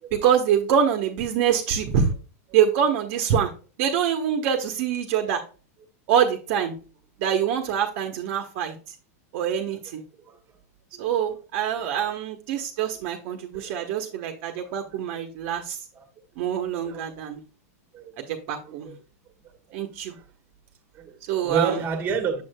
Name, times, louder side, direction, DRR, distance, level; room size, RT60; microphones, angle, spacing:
voice 1, 0.1-2.1 2.5-3.5 3.8-5.4 6.1-6.7 7.2-8.8 9.3-10.0 11.0-15.8 16.4-17.4 18.2-18.9 19.7-20.1 21.3-21.8, right 8 dB, 50° right, 0.9 m, -25 dB
voice 2, 11.7-12.1 12.6-12.7 12.9-13.1 13.5-13.8 14.5-15.0 15.9-16.1 16.8-17.1 17.9-18.1 18.6-19.0 19.4-19.5 20.1-20.2 20.9-22.4, right 6 dB, 25° right, 1.2 m, -31 dB
7.0 x 6.3 x 2.2 m
supercardioid pair, 140°, 8 cm